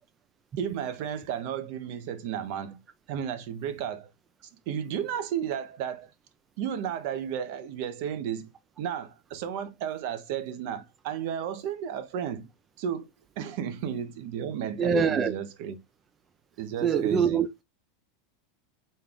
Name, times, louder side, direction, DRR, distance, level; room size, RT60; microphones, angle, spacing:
voice 1, 0.6-2.8 3.1-4.1 4.7-6.1 6.6-8.5 8.8-12.5 12.8-13.1 13.4-15.8 16.6-17.4, right 9 dB, 55° right, 0.7 m, -33 dB
voice 2, 14.8-15.3 16.8-17.6, right 6 dB, 20° right, 0.3 m, -24 dB
4.2 x 2.4 x 3.4 m
supercardioid pair, 155°, 0 cm